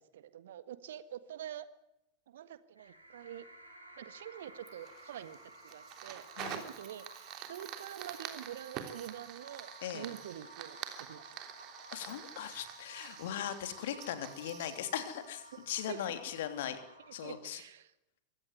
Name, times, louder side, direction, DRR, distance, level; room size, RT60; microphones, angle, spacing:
voice 1, 0.0-1.7 2.3-3.5 4.0-5.4 5.6-11.3 15.8-16.1 17.1-17.9, right 10 dB, 60° right, 13 dB, 1.6 m, -46 dB
sound 1, 2.8-17.3, right 1 dB, 90° right, 7.5 m, -55 dB
Fire, 4.7-16.0, right 10 dB, 40° right, 3.3 m, -47 dB
voice 2, 11.9-16.8 17.1-17.6, left 10 dB, 55° left, 9 dB, 3.1 m, -39 dB
23.5 x 17.0 x 9.7 m, 0.87 s
figure-of-eight pair, 90°, 0 cm